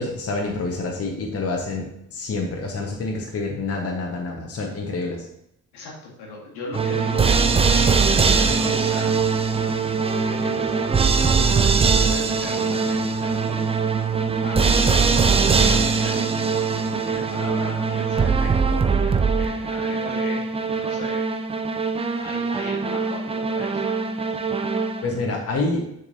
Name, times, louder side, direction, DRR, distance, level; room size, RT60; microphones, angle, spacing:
voice 1, 0.0-5.3 25.0-25.8, left 3 dB, 35° left, 0 dB, 1.3 m, -27 dB
voice 2, 5.7-9.2 10.0-13.7 14.4-16.3 17.0-21.3 22.2-23.9, left 3 dB, 60° left, -2 dB, 1.9 m, -37 dB
sound 1, 6.7-25.2, right 5 dB, 15° right, 0.5 m, -21 dB
6.9 x 6.5 x 2.7 m, 0.76 s
figure-of-eight pair, 45°, 42 cm